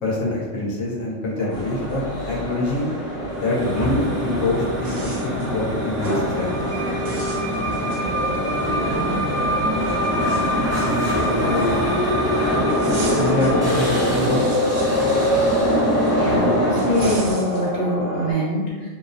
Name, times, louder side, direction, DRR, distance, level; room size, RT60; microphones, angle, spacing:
voice 1, 0.0-2.9 3.3-6.7 11.4-11.9 13.1-14.4, left 2 dB, 85° left, -5 dB, 1.0 m, -25 dB
sound 1, 1.1-1.2 1.5-2.6 4.1-4.2 4.7-5.5 5.9-6.2 6.6-6.8 7.0-8.5 8.9-9.0 9.8-12.0 12.7-13.6 14.0-16.1 16.8-17.7, right 3 dB, 75° right, 0.9 m, -40 dB
sound 2, 1.4-18.3, equal, ahead, 0.8 m, -31 dB
sound 3, 1.5-17.3, equal, 20° right, 0.4 m, -23 dB
voice 2, 16.2-18.9, equal, 55° left, -5 dB, 1.0 m, -24 dB
2.6 x 2.0 x 2.5 m, 1.3 s
omnidirectional pair, 1.3 m